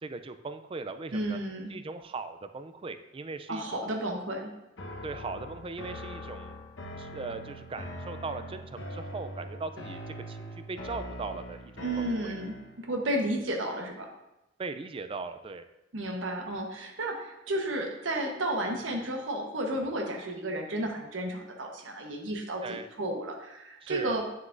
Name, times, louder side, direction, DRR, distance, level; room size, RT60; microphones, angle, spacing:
voice 1, 0.0-1.4 1.7-3.9 5.0-6.6 7.0-12.4 14.6-15.6 22.6-22.9 23.8-24.2, right 3 dB, 30° right, 9 dB, 0.4 m, -39 dB
voice 2, 1.1-1.7 3.5-4.5 11.8-14.1 15.9-24.3, right 1 dB, 85° right, 2 dB, 1.1 m, -32 dB
sound 1, 4.8-12.8, equal, 70° left, 1.1 m, -42 dB
9.3 x 6.4 x 2.6 m, 0.94 s
head